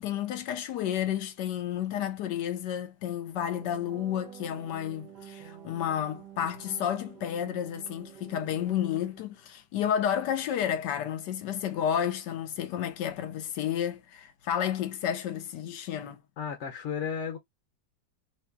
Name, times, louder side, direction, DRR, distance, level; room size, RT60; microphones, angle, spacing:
voice 1, 0.0-16.2, left 9 dB, 70° left, 1.2 m, -31 dB
sound 1, 3.5-9.4, right 9 dB, 70° right, 1.3 m, -48 dB
voice 2, 16.4-17.4, left 7 dB, 55° left, 0.8 m, -33 dB
3.0 x 2.2 x 3.4 m
omnidirectional pair, 2.0 m